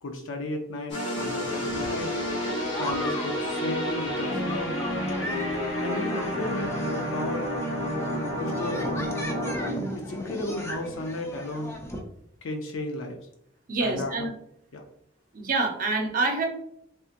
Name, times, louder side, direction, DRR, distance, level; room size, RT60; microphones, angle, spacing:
voice 1, 0.0-2.2 2.8-4.7 5.8-7.5 8.4-9.2 9.9-11.7 12.4-13.2 13.8-14.3 14.7-14.8, left 2 dB, 80° left, 3 dB, 0.5 m, -34 dB
sound 1, 0.9-10.1, equal, 60° left, 1.0 m, -30 dB
sound 2, 1.2-12.0, left 1 dB, 15° left, 0.5 m, -38 dB
voice 2, 13.7-14.3 15.3-16.5, right 3 dB, 45° right, 2 dB, 0.6 m, -26 dB
3.4 x 2.8 x 2.5 m, 0.70 s
head